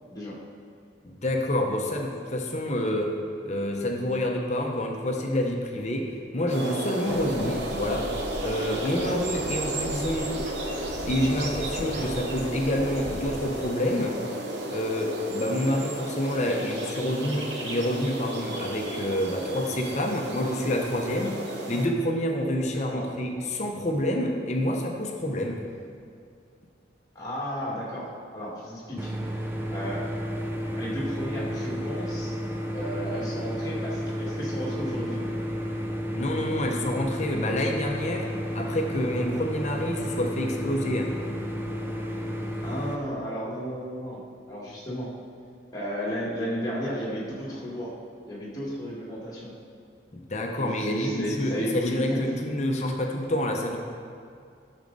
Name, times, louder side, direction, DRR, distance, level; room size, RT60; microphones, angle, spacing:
voice 1, 1.0-3.2 3.4-8.1 8.4-10.3 11.1-14.2 14.7-21.4 21.7-25.6 36.1-41.1 50.1-53.8, left 1 dB, 35° left, 2 dB, 0.8 m, -28 dB
sound 1, 6.5-21.9, right 2 dB, 70° right, 1.0 m, -33 dB
sound 2, 7.0-13.7, equal, 40° right, 1.6 m, -39 dB
voice 2, 27.2-29.1 29.7-30.2 30.7-32.4 32.7-35.4 42.6-44.2 44.5-45.1 45.7-47.9 48.3-49.5 50.5-52.4, equal, 20° left, -5 dB, 1.9 m, -33 dB
sound 3, 29.0-43.0, equal, 10° right, 0.6 m, -32 dB
12.0 x 6.4 x 4.0 m, 2.4 s
head